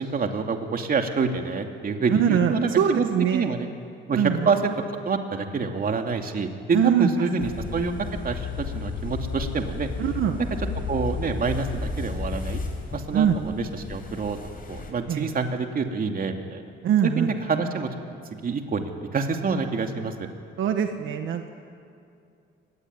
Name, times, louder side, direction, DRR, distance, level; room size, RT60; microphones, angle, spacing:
voice 1, 0.0-3.0 3.3-3.7 4.1-4.7 5.0-7.9 8.2-9.9 10.9-12.6 12.9-14.4 14.7-16.6 17.0-17.9 18.4-20.3, right 4 dB, 45° right, 4 dB, 2.8 m, -27 dB
voice 2, 2.1-3.5 4.1-4.5 6.7-7.1 10.0-10.4 13.1-13.4 15.1-15.3 16.8-17.4 20.6-21.5, right 8 dB, 75° right, 5 dB, 1.7 m, -23 dB
sound 1, 7.4-14.9, left 4 dB, 45° left, 5.3 m, -33 dB
24.5 x 19.5 x 9.8 m, 2.5 s
cardioid pair, 90°, 20 cm